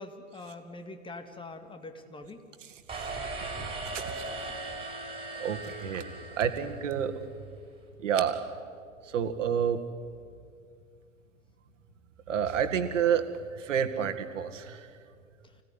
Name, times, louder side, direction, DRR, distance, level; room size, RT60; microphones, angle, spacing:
voice 1, 0.0-2.4, left 2 dB, 10° left, 7 dB, 2.0 m, -43 dB
sound 1, 2.9-7.1, right 3 dB, 15° right, 4.4 m, -38 dB
voice 2, 5.4-6.0 6.4-7.1 8.0-8.4 9.1-9.8 12.3-14.9, right 8 dB, 65° right, 8 dB, 2.0 m, -29 dB
25.5 x 17.0 x 9.8 m, 2.2 s
figure-of-eight pair, 95°, 40 cm